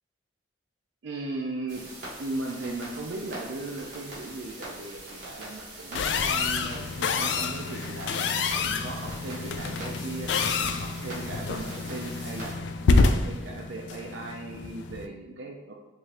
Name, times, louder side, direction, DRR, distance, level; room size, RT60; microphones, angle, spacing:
voice 1, 1.0-1.9 2.2-10.3 10.6-15.7, right 2 dB, 80° right, 0 dB, 0.5 m, -37 dB
sound 1, 1.7-12.5, right 1 dB, 45° right, 1.4 m, -42 dB
sound 2, 5.9-15.1, left 4 dB, 75° left, 0.3 m, -28 dB
4.4 x 2.5 x 3.5 m, 1.0 s
head